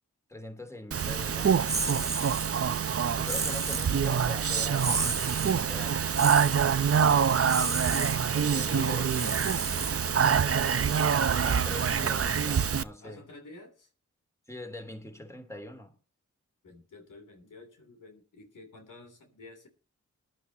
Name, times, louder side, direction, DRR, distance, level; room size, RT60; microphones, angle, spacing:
voice 1, 0.3-1.7 3.1-5.2 5.5-6.7 8.3-9.1 10.2-10.5 11.4-13.3 14.5-15.9, left 1 dB, 10° left, 3.0 m, -43 dB
Speech, 0.9-12.8, right 7 dB, 50° right, 0.7 m, -26 dB
sound 1, 1.7-2.5 3.2-3.9 4.8-5.5 6.1-6.6 7.4-8.2 9.1-10.2, right 3 dB, 20° right, 0.8 m, -33 dB
voice 2, 8.0-11.3 13.0-13.9 16.6-19.7, left 2 dB, 80° left, 3.2 m, -49 dB
20.5 x 11.5 x 2.9 m
cardioid pair, 40°, 30 cm